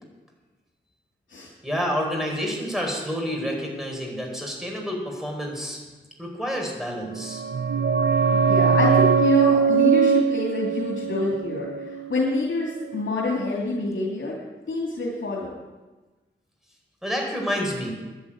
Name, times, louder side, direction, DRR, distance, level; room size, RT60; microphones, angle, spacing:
voice 1, 1.6-5.8 6.2-7.4 17.0-17.9, equal, ahead, 0 dB, 4.3 m, -29 dB
sound 1, 7.1-12.6 12.8-12.9, right 6 dB, 65° right, 0.7 m, -21 dB
voice 2, 8.3-14.4 14.7-15.5, left 2 dB, 90° left, -4 dB, 2.8 m, -27 dB
11.0 x 10.0 x 8.7 m, 1.2 s
wide cardioid pair, 105°, 20 cm